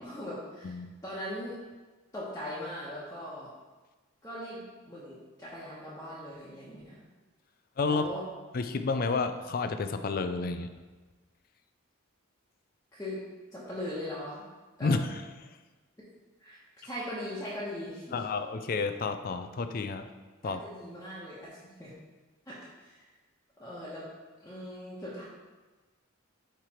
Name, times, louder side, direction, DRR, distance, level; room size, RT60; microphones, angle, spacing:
voice 1, 0.0-1.6 2.1-3.5 4.2-7.0 7.8-8.2 12.9-13.2 13.5-14.4 14.8-15.1 16.4-18.3 20.4-21.9 22.5-23.0 23.6-24.1 24.4-25.2, left 1 dB, 15° left, -9 dB, 1.1 m, -40 dB
voice 2, 7.8-8.1 8.5-10.7 14.8-15.2 18.1-20.1 20.4-20.6, left 4 dB, 45° left, 9 dB, 0.4 m, -30 dB
8.7 x 3.3 x 4.3 m, 1.3 s
head